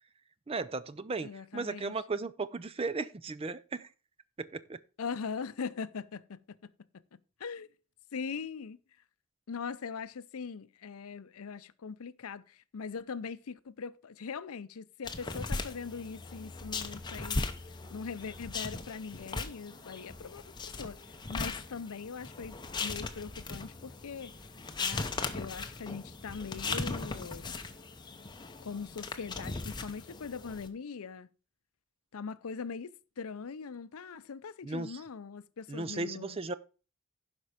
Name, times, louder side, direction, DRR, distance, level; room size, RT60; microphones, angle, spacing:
voice 1, 0.5-3.9 4.4-4.8 34.6-35.0 35.7-36.5, right 3 dB, 25° right, 0.4 m, -36 dB
voice 2, 1.2-1.9 5.0-6.7 7.4-7.7 8.1-8.8 9.5-17.5 17.9-24.3 24.8-27.6 28.6-31.3 32.1-36.4, left 5 dB, 75° left, 0.5 m, -41 dB
sound 1, 15.0-30.7, left 3 dB, 20° left, 0.7 m, -38 dB
11.5 x 5.2 x 4.9 m
head